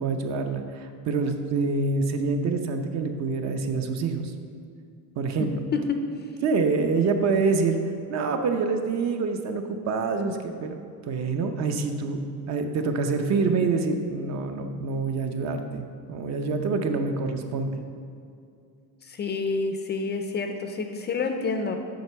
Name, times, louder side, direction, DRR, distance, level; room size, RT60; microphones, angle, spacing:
voice 1, 0.0-4.3 5.2-5.5 6.4-7.8 8.1-10.8 11.1-17.8, right 4 dB, 50° right, 6 dB, 0.7 m, -26 dB
voice 2, 5.4-6.1 7.4-7.6 19.0-21.8, left 4 dB, 30° left, 6 dB, 0.4 m, -28 dB
7.8 x 5.3 x 6.8 m, 2.4 s
cardioid pair, 175°, 36 cm